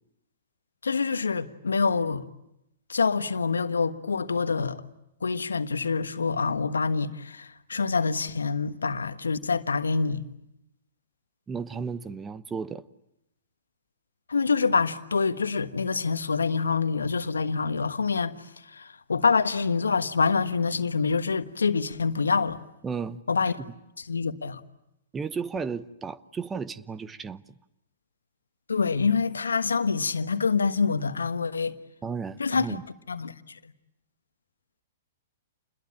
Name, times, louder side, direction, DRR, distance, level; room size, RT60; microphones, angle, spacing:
voice 1, 0.8-2.3 2.9-4.8 5.2-10.2 14.3-22.6 23.3-23.5 24.0-24.6 28.7-31.7 32.4-32.7 33.1-33.7, left 5 dB, 80° left, 1.3 m, -26 dB
voice 2, 11.5-12.8 22.8-23.2 25.1-27.4 32.0-32.8, right 5 dB, 15° right, 1.0 m, -34 dB
29.0 x 21.5 x 8.7 m
figure-of-eight pair, 110°, 0 cm